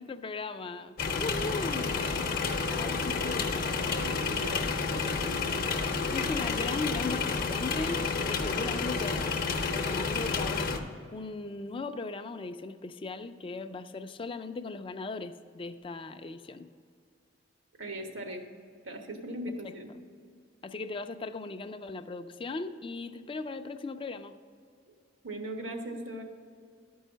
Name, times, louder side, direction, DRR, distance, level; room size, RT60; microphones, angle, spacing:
voice 1, 0.0-2.1 2.8-3.7 6.1-9.3 9.7-10.7 11.1-16.7 19.6-19.8 20.6-24.3, left 3 dB, 30° left, 9 dB, 0.4 m, -38 dB
sound 1, 1.0-10.8, left 4 dB, 50° left, 0.7 m, -30 dB
voice 2, 2.4-3.3 3.9-5.4 17.8-18.4 18.8-19.9 25.2-26.2, right 1 dB, 85° right, 4 dB, 1.3 m, -40 dB
11.5 x 5.5 x 6.2 m, 2.2 s
head